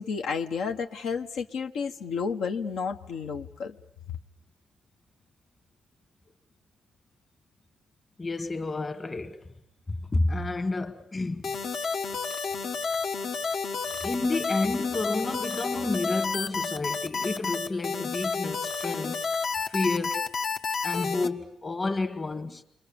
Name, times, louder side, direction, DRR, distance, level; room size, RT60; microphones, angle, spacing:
voice 1, 0.0-3.8, left 5 dB, 80° left, 1.3 m, -31 dB
voice 2, 8.2-9.5 9.9-11.4 14.0-19.3 19.7-20.3 20.8-22.6, left 2 dB, 25° left, 1.7 m, -30 dB
sound 1, 11.4-21.3, left 5 dB, 60° left, 1.4 m, -30 dB
29.5 x 23.5 x 7.1 m
cardioid pair, 90°, 0 cm